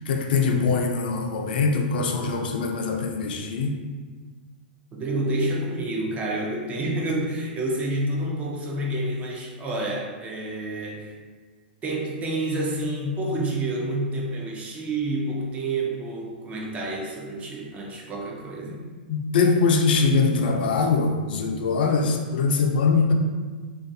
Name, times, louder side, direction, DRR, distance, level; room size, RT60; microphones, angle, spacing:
voice 1, 0.0-3.8 18.7-18.8 19.1-23.1, left 4 dB, 70° left, 2 dB, 0.4 m, -22 dB
voice 2, 4.9-11.1 11.8-18.8, right 1 dB, 25° right, -1 dB, 0.5 m, -28 dB
2.4 x 2.3 x 2.5 m, 1.4 s
hypercardioid pair, 115°, 5 cm